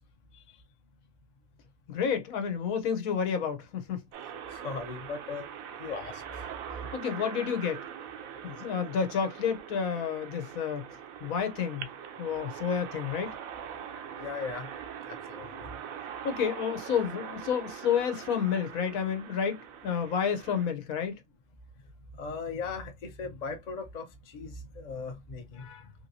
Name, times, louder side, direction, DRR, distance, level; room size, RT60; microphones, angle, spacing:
voice 1, 1.9-4.0 6.9-7.9 8.4-10.9 11.2-11.9 12.2-13.3 16.2-21.2, left 7 dB, 85° left, 1.2 m, -30 dB
sound 1, 4.1-20.7, right 8 dB, 85° right, 1.0 m, -42 dB
voice 2, 4.5-5.5 5.8-6.4 14.2-14.7 15.1-15.7 22.2-25.9, left 4 dB, 40° left, 0.7 m, -38 dB
3.5 x 2.9 x 2.6 m
omnidirectional pair, 1.4 m